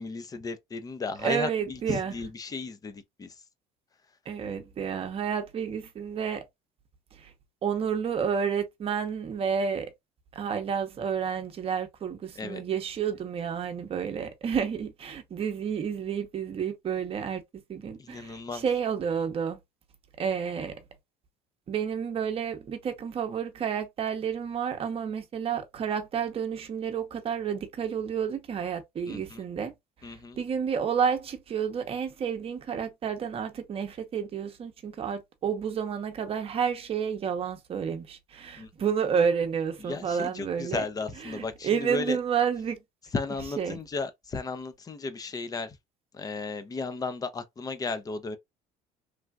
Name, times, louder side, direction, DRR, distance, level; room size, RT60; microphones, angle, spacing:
voice 1, 0.0-3.3 12.4-12.6 18.0-18.6 29.1-29.4 30.0-30.4 38.6-38.7 39.9-42.2 43.1-45.8 46.1-48.4, left 4 dB, 25° left, 0.5 m, -34 dB
voice 2, 1.2-2.1 4.3-6.4 7.2-7.3 7.6-9.9 10.3-19.6 20.2-20.8 21.7-29.7 30.0-40.9 41.3-42.8 43.6-43.8, right 7 dB, 40° right, 0.8 m, -30 dB
3.3 x 2.4 x 2.3 m
cardioid pair, 120°, 16 cm